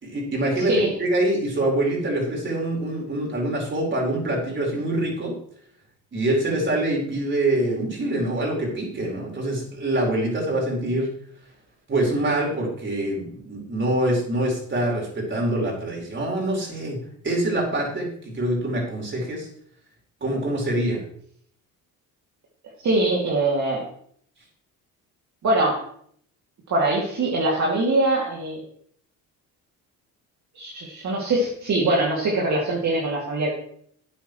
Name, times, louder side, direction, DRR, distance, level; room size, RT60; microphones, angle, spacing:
voice 1, 0.0-0.7 1.0-5.4 6.1-11.1 11.9-17.0 17.2-19.5 20.2-21.0, right 1 dB, 30° right, -2 dB, 4.6 m, -25 dB
voice 2, 22.8-23.8 25.4-25.8 26.7-28.6 30.5-33.5, right 2 dB, 50° right, -4 dB, 2.6 m, -22 dB
13.0 x 9.0 x 3.2 m, 0.64 s
cardioid pair, 115°, 36 cm